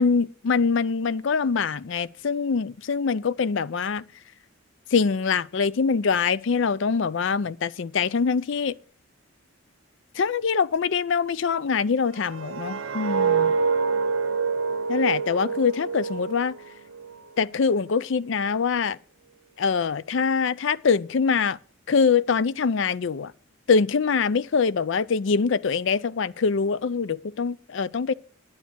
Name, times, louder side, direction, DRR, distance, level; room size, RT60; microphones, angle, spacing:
voice 1, 0.0-4.0 4.9-8.7 10.2-13.5 14.9-16.5 17.4-19.0 19.6-21.6 21.9-23.3 23.7-28.1, left 5 dB, 60° left, 0.4 m, -24 dB
sound 1, 12.1-17.2 17.5-17.9, right 5 dB, 70° right, 0.8 m, -26 dB
9.5 x 9.3 x 6.1 m
head